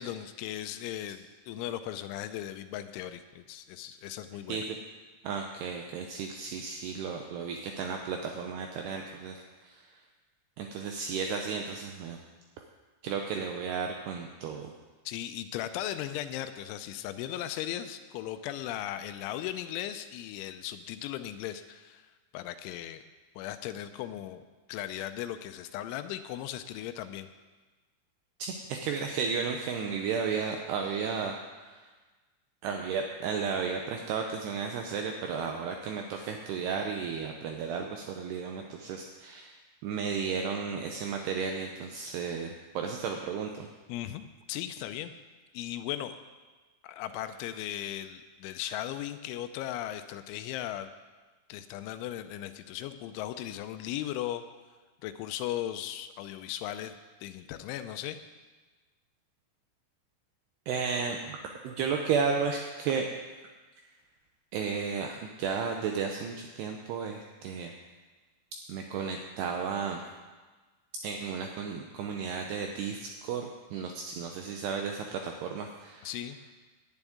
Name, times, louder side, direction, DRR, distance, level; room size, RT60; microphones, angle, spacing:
voice 1, 0.0-4.7 15.1-23.1 23.4-27.3 43.9-45.1 45.5-46.2 46.8-50.9 51.5-54.4 55.0-58.2 76.0-76.4, left 12 dB, 85° left, 10 dB, 2.9 m, -37 dB
voice 2, 5.2-9.9 10.6-12.2 13.0-14.7 28.4-31.9 32.6-43.7 60.7-61.4 61.6-63.1 64.5-67.7 68.7-70.0 71.0-76.1, right 6 dB, 85° right, 3 dB, 2.4 m, -33 dB
11.0 x 7.1 x 9.3 m, 1.3 s
omnidirectional pair, 5.6 m